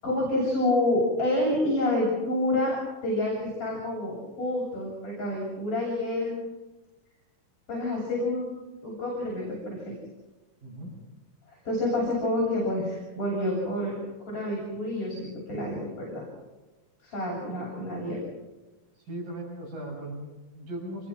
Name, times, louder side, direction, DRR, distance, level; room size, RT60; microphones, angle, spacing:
voice 1, 0.0-6.4 7.7-8.5 8.8-9.9 11.5-14.0 14.3-16.2 17.0-18.2, left 1 dB, 40° left, -4 dB, 8.8 m, -28 dB
voice 2, 10.6-10.9 19.0-21.1, right 1 dB, 90° right, -1 dB, 8.0 m, -38 dB
28.0 x 23.5 x 6.2 m, 1.1 s
omnidirectional pair, 3.8 m